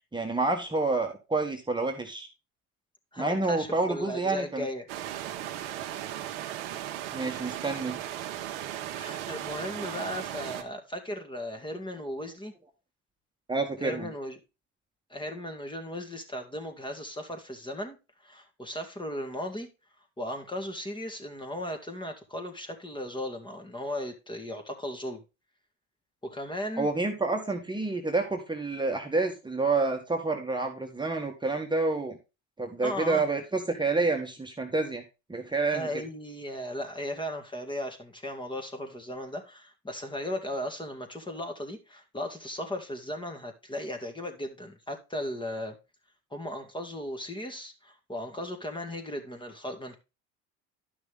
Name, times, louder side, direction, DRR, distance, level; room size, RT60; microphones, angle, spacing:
voice 1, 0.1-2.3 3.2-4.7 7.1-8.0 13.5-14.1 26.8-32.2 32.6-35.0 35.3-35.9, right 3 dB, 15° right, 1.7 m, -28 dB
voice 2, 3.1-4.9 8.7-12.5 13.8-14.4 15.1-19.7 20.2-25.2 26.2-26.9 32.8-33.3 35.7-45.8 46.3-49.9, left 1 dB, 15° left, 2.2 m, -36 dB
sound 1, 4.9-10.6, right 12 dB, 85° right, 1.3 m, -36 dB
11.0 x 6.1 x 3.6 m
supercardioid pair, 85°, 34 cm